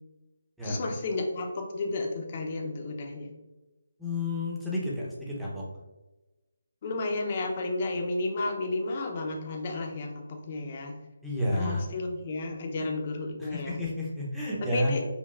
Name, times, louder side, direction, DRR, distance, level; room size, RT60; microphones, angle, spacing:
voice 1, 0.6-3.3 6.8-11.0 11.5-13.8 14.7-15.0, left 2 dB, 35° left, 1 dB, 0.6 m, -32 dB
voice 2, 4.0-5.6 11.2-11.8 12.8-12.9 13.4-15.0, left 1 dB, ahead, -7 dB, 0.7 m, -31 dB
5.2 x 2.3 x 2.4 m, 1.1 s
figure-of-eight pair, 165°, 0 cm